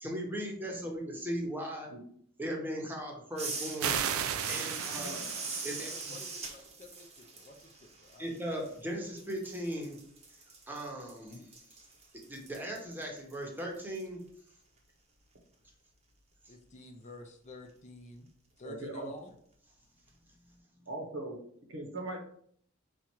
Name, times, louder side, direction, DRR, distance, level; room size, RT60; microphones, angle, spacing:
voice 1, 0.0-1.9 2.4-4.0 4.5-6.1 8.2-10.0 10.7-11.4 12.3-14.2, equal, 10° right, 0 dB, 0.9 m, -38 dB
sound 1, 3.4-8.9 9.2-14.0, right 4 dB, 30° right, 0.8 m, -43 dB
sound 2, 3.8-6.4, right 8 dB, 80° right, 0.4 m, -35 dB
voice 2, 4.9-5.3 18.6-19.1 20.9-21.4 21.7-22.2, right 2 dB, 65° right, 2 dB, 0.9 m, -40 dB
voice 3, 5.8-8.4 16.5-18.3 18.6-19.3, left 2 dB, 35° left, 3 dB, 0.5 m, -50 dB
4.3 x 2.4 x 4.5 m, 0.64 s
head